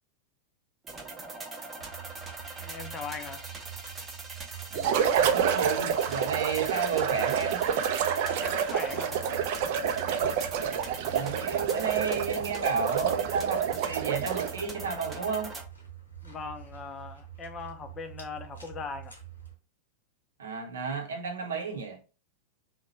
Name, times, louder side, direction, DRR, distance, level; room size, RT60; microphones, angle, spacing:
sound 1, 0.8-15.6, right 3 dB, 15° right, 0.7 m, -42 dB
sound 2, 1.8-19.5, right 10 dB, 75° left, 1.0 m, -46 dB
voice 1, 2.6-3.4 4.7-5.2 8.4-9.2 16.2-19.1, left 5 dB, 25° left, 0.5 m, -40 dB
sound 3, 4.7-14.6, right 8 dB, 50° right, 0.4 m, -28 dB
voice 2, 5.2-7.7 11.1-15.5 20.4-22.0, right 5 dB, 65° right, 0.7 m, -32 dB
2.8 x 2.1 x 4.1 m
figure-of-eight pair, 90°, 0 cm